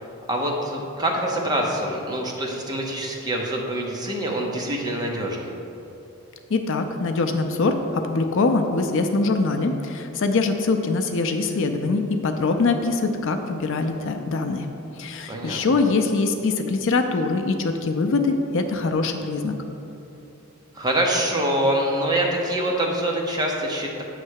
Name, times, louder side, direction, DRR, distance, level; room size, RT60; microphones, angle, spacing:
voice 1, 0.3-5.5 15.3-15.8 20.7-24.0, right 1 dB, 20° right, -1 dB, 0.8 m, -25 dB
voice 2, 6.5-14.7 15.0-19.5, left 3 dB, 55° left, 6 dB, 0.4 m, -23 dB
8.2 x 3.2 x 6.4 m, 2.8 s
head